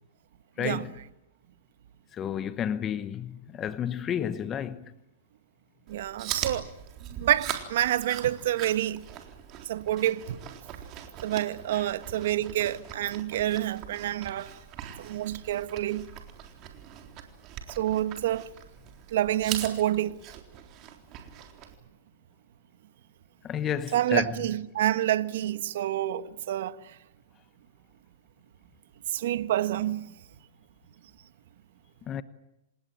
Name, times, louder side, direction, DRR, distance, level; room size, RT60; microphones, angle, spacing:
voice 1, 0.6-0.9 2.1-4.8 11.7-11.8 23.4-24.4 32.1-32.2, left 9 dB, 25° left, 1.0 m, -31 dB
Chewing mastication, 5.9-21.7, right 10 dB, 35° right, 3.8 m, -41 dB
voice 2, 5.9-6.7 7.2-9.0 9.7-10.4 11.2-14.5 15.0-16.1 17.8-18.5 19.1-20.2 23.9-26.8 29.1-30.1, right 13 dB, 65° right, 1.5 m, -28 dB
27.5 x 19.0 x 9.1 m
hypercardioid pair, 135°, 0 cm